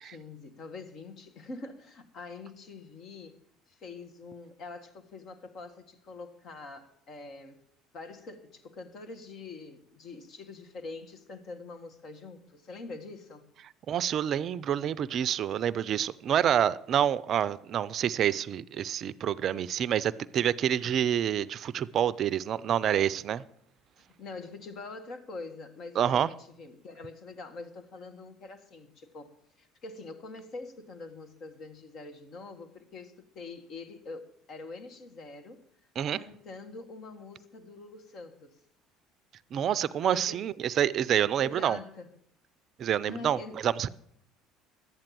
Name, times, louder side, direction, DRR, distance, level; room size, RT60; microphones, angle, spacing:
voice 1, 0.0-3.4 3.7-7.6 7.9-13.5 24.2-35.6 36.1-38.6 40.0-40.5 41.4-42.1 43.0-43.6, left 3 dB, 50° left, 1.8 m, -44 dB
voice 2, 13.9-23.4 26.0-26.3 36.0-36.2 39.5-41.8 42.8-43.9, right 9 dB, 50° right, 0.5 m, -27 dB
12.0 x 8.8 x 7.5 m
hypercardioid pair, 65°, 0 cm